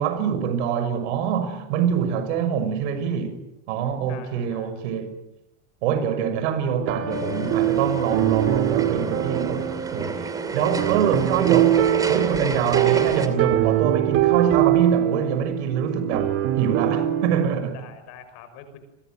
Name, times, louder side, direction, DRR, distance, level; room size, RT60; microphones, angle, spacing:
voice 1, 0.0-3.4 3.7-5.1 5.8-16.3 16.6-17.8, right 8 dB, 65° right, 6.3 m, -25 dB
voice 2, 4.1-4.8 17.7-18.8, left 8 dB, 45° left, 6.0 m, -44 dB
sound 1, 6.8-17.5, right 12 dB, 40° right, 2.4 m, -23 dB
sound 2, 7.1-13.3, right 3 dB, 10° right, 2.6 m, -30 dB
29.5 x 23.5 x 7.8 m
supercardioid pair, 175°, 36 cm